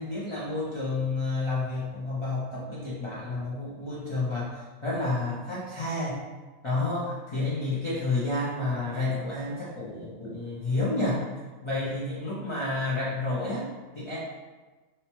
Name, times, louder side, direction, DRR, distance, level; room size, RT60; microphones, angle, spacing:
voice 1, 0.0-6.2 6.6-11.2 11.6-14.2, left 2 dB, 50° left, -8 dB, 0.3 m, -30 dB
2.8 x 2.1 x 2.9 m, 1.3 s
omnidirectional pair, 1.3 m